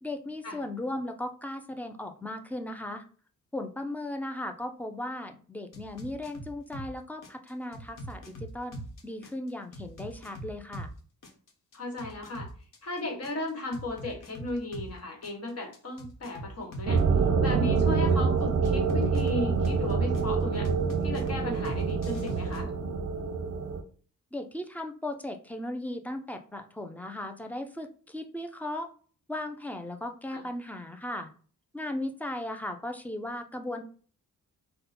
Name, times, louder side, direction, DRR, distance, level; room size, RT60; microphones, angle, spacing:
voice 1, 0.0-3.0 3.5-10.9 24.3-28.9 29.3-31.3 31.7-33.8, left 1 dB, 5° left, 5 dB, 0.4 m, -37 dB
sound 1, 5.7-6.9 7.2-10.9 11.2-14.9 15.2-17.0 18.6-20.2 20.6-22.6, right 1 dB, 75° left, 1.1 m, -42 dB
voice 2, 11.7-12.5 12.8-17.0 17.4-20.7 21.0-22.7 30.3-30.5, left 2 dB, 45° left, 2 dB, 1.3 m, -36 dB
sound 2, 16.9-23.8, right 5 dB, 45° right, 0.6 m, -26 dB
5.3 x 2.2 x 4.2 m, 0.42 s
wide cardioid pair, 155°, 33 cm